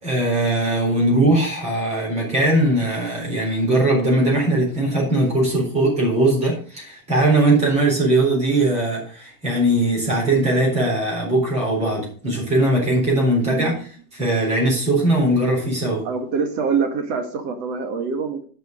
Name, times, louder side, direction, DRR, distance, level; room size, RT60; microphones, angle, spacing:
voice 1, 0.0-16.1, right 1 dB, 15° right, -3 dB, 4.0 m, -20 dB
voice 2, 13.4-13.8 16.0-18.4, right 5 dB, 45° right, 7 dB, 1.9 m, -25 dB
10.5 x 5.6 x 5.2 m, 0.43 s
supercardioid pair, 165°, 43 cm